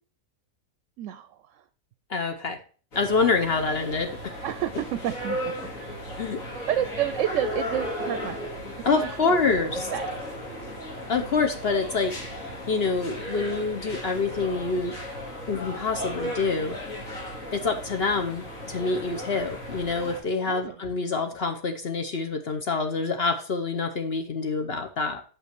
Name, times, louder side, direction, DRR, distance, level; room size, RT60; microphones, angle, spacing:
voice 1, 1.0-1.6 4.4-5.5 6.7-9.4 9.7-10.1 20.5-20.8, right 11 dB, 75° right, 12 dB, 0.9 m, -30 dB
voice 2, 2.1-2.6 2.9-4.1 6.2-6.4 8.8-9.9 11.1-14.9 15.5-16.8 17.5-25.2, left 4 dB, 55° left, 5 dB, 1.0 m, -26 dB
sound 1, 2.9-20.2, equal, 90° left, 2.8 m, -36 dB
6.2 x 5.7 x 5.8 m, 0.40 s
omnidirectional pair, 1.4 m